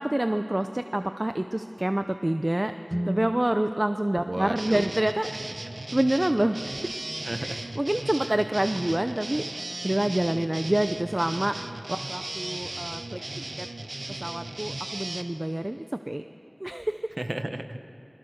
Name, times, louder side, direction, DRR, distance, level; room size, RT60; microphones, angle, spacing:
voice 1, 0.0-2.7 3.1-5.3 5.9-7.0 7.4-9.4 9.8-13.2 13.6-13.7 14.2-16.2 16.6-17.0, right 1 dB, 35° right, 8 dB, 0.7 m, -27 dB
Guitar, 2.9-5.5, equal, 15° right, 1.3 m, -37 dB
voice 2, 4.3-5.0 7.2-7.6 8.2-8.4 17.2-17.9, right 1 dB, 50° right, 8 dB, 1.2 m, -34 dB
sound 1, 4.5-15.2, right 2 dB, 80° right, 1.0 m, -37 dB
29.5 x 22.0 x 6.6 m, 2.9 s
wide cardioid pair, 45°, 0 cm